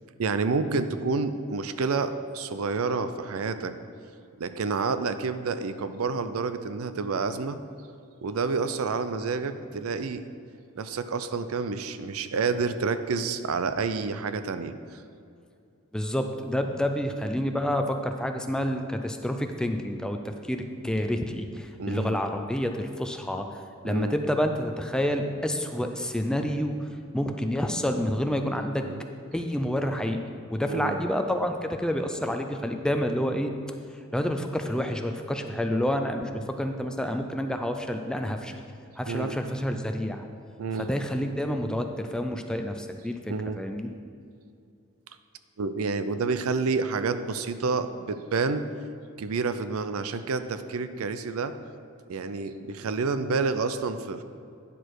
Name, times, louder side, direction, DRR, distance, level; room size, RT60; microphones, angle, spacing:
voice 1, 0.2-3.7 4.4-7.6 8.2-10.2 10.8-15.0 21.8-22.2 23.8-24.2 28.8-29.0 30.6-31.0 36.3-36.5 39.1-39.3 40.6-40.9 43.3-43.6 45.6-48.7 49.2-51.5 52.1-54.2, right 4 dB, 80° right, 11 dB, 0.5 m, -29 dB
voice 2, 15.9-23.6 23.8-26.8 27.1-28.8 29.3-30.2 30.5-33.5 34.1-38.6 39.0-40.2 40.8-43.2 43.6-43.9, equal, 5° left, 5 dB, 0.4 m, -28 dB
9.9 x 6.5 x 4.7 m, 2.5 s
head